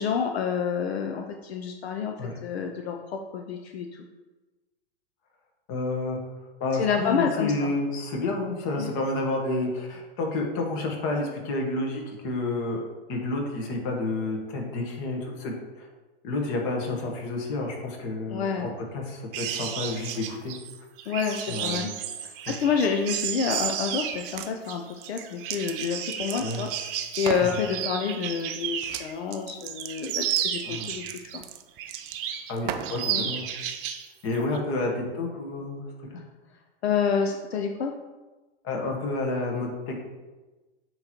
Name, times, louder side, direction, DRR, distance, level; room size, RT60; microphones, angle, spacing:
voice 1, 0.0-2.1 2.4-4.1 6.7-7.7 8.8-8.9 18.3-18.7 21.1-21.9 22.5-26.7 27.2-31.0 31.3-31.4 33.1-33.3 36.8-37.9, left 6 dB, 80° left, 4 dB, 0.6 m, -28 dB
voice 2, 5.7-6.2 6.6-12.8 13.1-15.9 16.2-20.5 21.5-21.8 22.5-22.6 26.4-26.6 27.4-27.6 30.6-30.9 32.5-33.5 34.2-35.8 38.6-40.1, left 2 dB, 45° left, 1 dB, 1.5 m, -30 dB
sound 1, 19.3-29.1 29.5-31.4 31.8-32.5 32.8-34.1 34.3-34.6, right 10 dB, 55° right, 0.8 m, -33 dB
sound 2, 24.1-24.5 24.9-26.8 27.1-27.5 28.8-29.0 29.3-33.0, right 9 dB, 30° right, 0.4 m, -37 dB
7.5 x 3.1 x 4.4 m, 1.2 s
hypercardioid pair, 120°, 32 cm